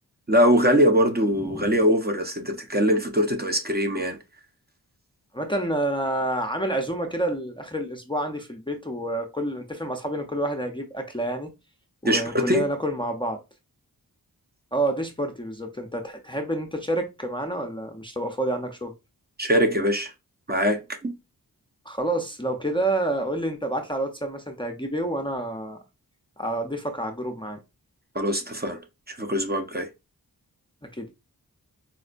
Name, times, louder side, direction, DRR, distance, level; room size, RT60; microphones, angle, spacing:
voice 1, 0.3-4.2 12.0-12.7 19.4-20.1 20.5-21.1 28.1-28.8 29.1-29.9, equal, 25° right, 0.7 m, -22 dB
voice 2, 1.4-1.7 5.3-11.5 12.0-13.4 14.7-18.9 21.9-25.8 26.4-27.6 31.0-31.1, right 1 dB, 15° left, 0.6 m, -28 dB
4.3 x 2.1 x 2.4 m
cardioid pair, 55°, 37 cm